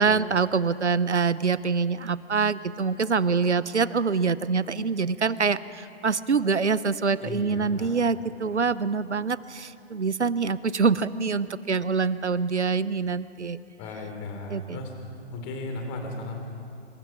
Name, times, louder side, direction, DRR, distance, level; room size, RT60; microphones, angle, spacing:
voice 1, 0.0-13.6 14.5-14.8, right 5 dB, 80° right, 17 dB, 0.9 m, -25 dB
voice 2, 7.2-7.9 13.8-14.9 15.3-16.4, left 2 dB, 25° left, 3 dB, 4.1 m, -35 dB
26.5 x 25.5 x 6.3 m, 2.7 s
figure-of-eight pair, 130°, 34 cm